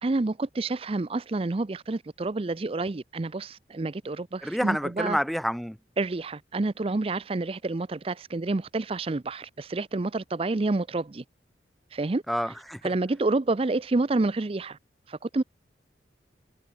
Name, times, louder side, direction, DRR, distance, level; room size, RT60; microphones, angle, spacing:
voice 1, 0.0-5.2 6.0-11.2 11.9-12.2 12.8-14.8 15.1-15.4, right 2 dB, 30° right, 0.5 m, -28 dB
voice 2, 4.4-5.8 12.3-12.9, equal, ahead, 1.1 m, -28 dB
head